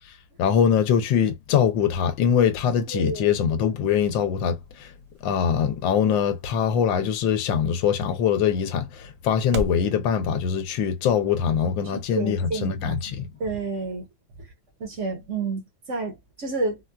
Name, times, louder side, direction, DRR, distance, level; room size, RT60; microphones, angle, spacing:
voice 1, 0.4-4.9 5.2-13.3, left 7 dB, 90° left, 1.4 m, -23 dB
voice 2, 2.9-3.4 11.9-14.1 14.4-14.5 14.8-16.8, right 3 dB, 50° right, 1.0 m, -30 dB
sound 1, 3.6-9.9, right 1 dB, 85° right, 0.7 m, -40 dB
4.3 x 2.2 x 2.2 m
omnidirectional pair, 2.0 m